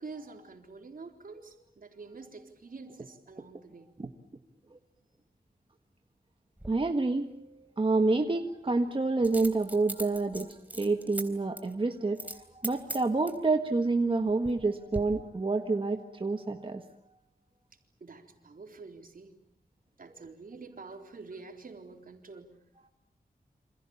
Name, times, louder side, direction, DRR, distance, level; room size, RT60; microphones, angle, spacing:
voice 1, 0.0-3.9 17.7-19.4 20.0-22.6, right 4 dB, 60° right, 4 dB, 3.9 m, -47 dB
Coin (dropping), 6.6-6.7 9.2-11.2 11.6-11.7 12.2-12.4 12.6-13.4 14.1-14.6 14.9-15.0, right 1 dB, 10° right, 3.7 m, -39 dB
voice 2, 6.7-16.8, right 3 dB, 35° right, 5 dB, 1.6 m, -28 dB
28.5 x 27.0 x 7.2 m, 0.72 s
wide cardioid pair, 105°, 16 cm